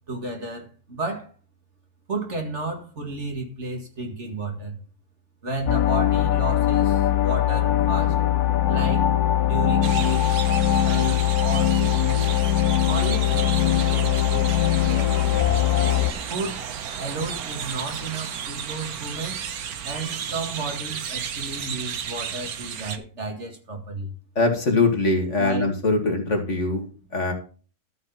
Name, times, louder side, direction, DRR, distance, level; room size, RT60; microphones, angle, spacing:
voice 1, 0.1-1.3 2.1-4.8 5.4-8.2 8.7-9.1 9.4-12.3 12.8-15.6 16.3-16.6 17.0-19.4 19.8-24.1 25.4-25.7, right 2 dB, 45° right, 2.4 m, -32 dB
sound 1, 5.7-16.1, left 12 dB, 85° left, 1.3 m, -21 dB
sound 2, 9.8-23.0, right 8 dB, 75° right, 1.4 m, -33 dB
voice 2, 24.4-27.3, left 2 dB, 50° left, 2.4 m, -22 dB
13.0 x 4.8 x 5.7 m
omnidirectional pair, 1.6 m